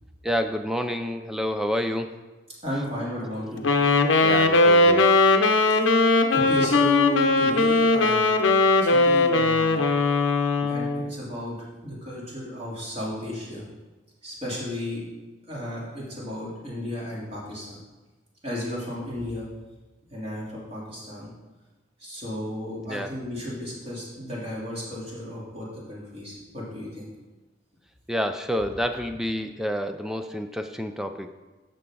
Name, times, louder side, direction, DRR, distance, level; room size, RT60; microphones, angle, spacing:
voice 1, 0.2-2.2 4.2-5.1 10.6-10.7 22.9-23.1 28.1-31.3, equal, 5° right, 7 dB, 0.4 m, -29 dB
voice 2, 2.6-3.7 6.3-8.2 8.8-9.8 10.7-13.6 14.2-15.1 15.5-17.8 18.4-19.5 20.1-21.3 22.0-27.1, equal, 30° right, -6 dB, 3.1 m, -33 dB
Wind instrument woodwind instrument, 3.6-11.1, left 3 dB, 85° left, 0.7 m, -19 dB
12.0 x 6.9 x 3.9 m, 1.2 s
head